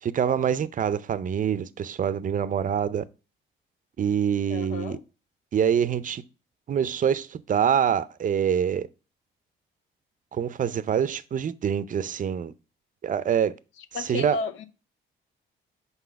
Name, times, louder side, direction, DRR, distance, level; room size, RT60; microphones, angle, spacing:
voice 1, 0.0-3.0 4.0-5.0 5.5-6.2 6.7-8.9 10.3-12.5 13.0-13.6 14.0-14.4, right 8 dB, 40° right, 0.5 m, -25 dB
voice 2, 4.5-5.0 13.9-14.6, left 4 dB, 85° left, 0.7 m, -32 dB
5.6 x 4.0 x 5.6 m
cardioid pair, 90°, 20 cm